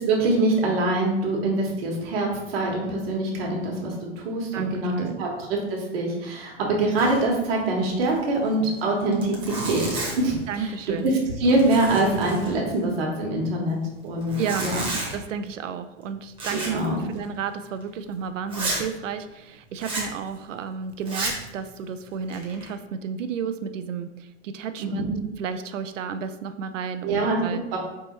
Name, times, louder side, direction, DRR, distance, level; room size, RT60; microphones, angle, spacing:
voice 1, 0.0-11.1 11.4-14.8 16.5-17.1 24.8-25.2 27.0-27.4 27.7-27.8, right 2 dB, 50° right, -1 dB, 1.2 m, -24 dB
voice 2, 4.5-5.3 10.5-11.1 14.4-25.1 25.4-27.6, right 6 dB, 80° right, 10 dB, 0.5 m, -32 dB
Zipper (clothing), 7.0-7.4 7.6-7.7 8.0-8.2 8.8-8.9 9.1-10.4 10.9-11.2 11.4-12.8 14.2-15.2 16.4-16.9 17.1-17.3 17.8-17.9 18.5-18.9 19.8-20.1 21.0-21.5 22.1-22.7, right 2 dB, 15° right, 0.9 m, -32 dB
4.0 x 3.5 x 3.0 m, 1.0 s
hypercardioid pair, 125°, 37 cm